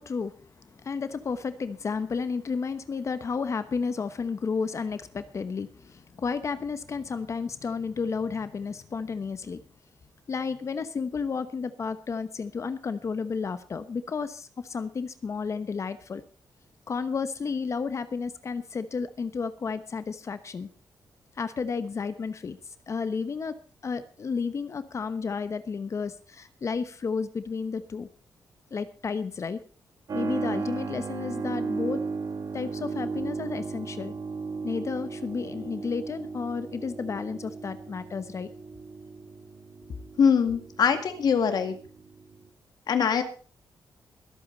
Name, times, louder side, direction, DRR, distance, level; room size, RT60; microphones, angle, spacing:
voice 1, 0.0-9.6 10.3-16.2 16.9-20.7 21.4-23.5 23.8-28.1 28.7-29.6 30.1-32.0 32.5-34.1 34.6-38.5, left 5 dB, 40° left, 11 dB, 1.0 m, -32 dB
Keyboard (musical), 30.1-42.5, right 4 dB, 55° right, 2.5 m, -35 dB
voice 2, 40.2-41.8 42.9-43.2, left 6 dB, 65° left, 7 dB, 2.1 m, -23 dB
22.5 x 8.6 x 4.0 m, 0.40 s
wide cardioid pair, 130°, 7 cm